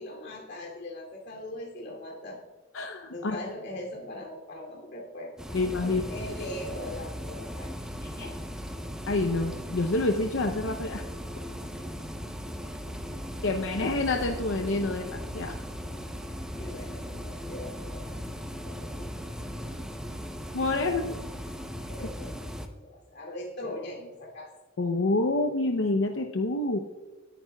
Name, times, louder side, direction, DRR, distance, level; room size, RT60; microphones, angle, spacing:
voice 1, 0.0-2.4 3.1-8.4 12.8-13.5 16.6-18.1 18.6-19.1 19.4-19.7 20.8-21.2 21.9-22.4 22.8-24.5, left 1 dB, 60° left, -1 dB, 2.7 m, -41 dB
voice 2, 2.7-3.4 5.5-6.0 9.1-11.0 11.4-11.5 13.4-15.5 20.5-21.1 24.8-26.8, left 2 dB, 75° left, 5 dB, 0.7 m, -27 dB
sound 1, 5.4-22.7, equal, 5° right, 0.7 m, -38 dB
19.5 x 9.1 x 2.3 m, 1.3 s
head